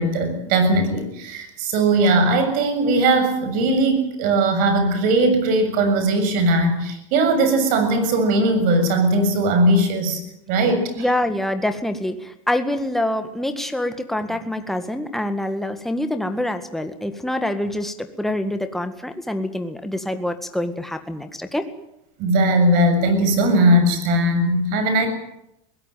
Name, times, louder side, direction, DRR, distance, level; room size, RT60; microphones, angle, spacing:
voice 1, 0.0-10.2 10.5-11.1 22.2-25.1, right 1 dB, 60° right, 8 dB, 6.9 m, -19 dB
voice 2, 11.0-21.7, left 1 dB, ahead, 7 dB, 1.8 m, -25 dB
21.5 x 17.0 x 9.3 m, 0.81 s
supercardioid pair, 125°, 17 cm